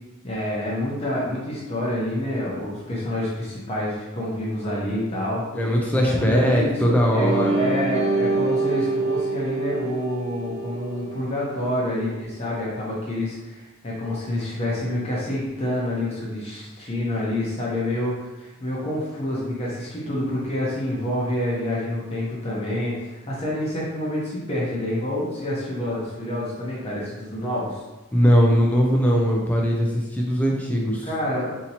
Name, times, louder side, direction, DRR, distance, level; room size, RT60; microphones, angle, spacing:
voice 1, 0.2-5.4 5.9-27.8 31.0-31.6, left 1 dB, 30° left, -6 dB, 0.7 m, -28 dB
voice 2, 5.5-7.7 28.1-31.1, equal, 5° left, -1 dB, 0.3 m, -20 dB
sound 1, 7.2-11.8, right 3 dB, 50° right, 1.0 m, -26 dB
4.1 x 2.8 x 2.8 m, 1.1 s
head